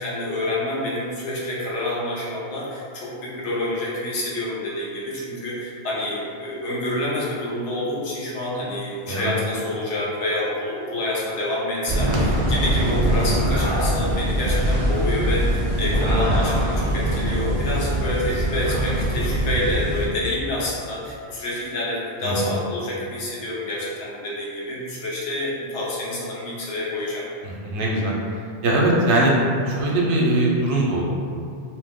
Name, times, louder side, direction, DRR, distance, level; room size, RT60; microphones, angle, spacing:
voice 1, 0.0-27.2, left 1 dB, 80° left, -6 dB, 1.0 m, -28 dB
sound 1, 11.9-20.1, right 1 dB, 55° right, 0.4 m, -22 dB
voice 2, 22.2-22.5 27.4-28.1 28.6-29.3 29.7-31.1, right 1 dB, 75° right, -3 dB, 0.9 m, -21 dB
2.6 x 2.1 x 3.5 m, 2.4 s
omnidirectional pair, 1.2 m